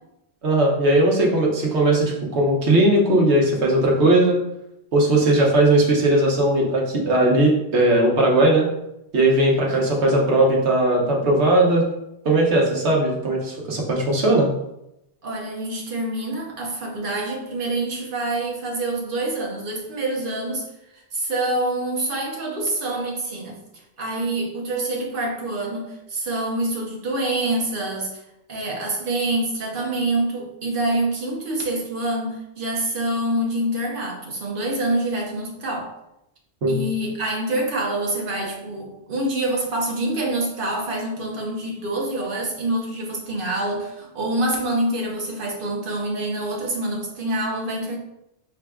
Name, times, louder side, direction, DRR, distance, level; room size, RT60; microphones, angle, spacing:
voice 1, 0.4-4.4 4.9-8.7 9.1-11.8 12.2-14.5 36.6-36.8, right 1 dB, 75° right, -1 dB, 1.2 m, -18 dB
voice 2, 15.2-20.7 20.9-28.2 28.5-35.9 36.7-48.0, right 1 dB, 50° right, 0 dB, 1.0 m, -26 dB
4.7 x 3.9 x 2.3 m, 0.84 s
omnidirectional pair, 1.2 m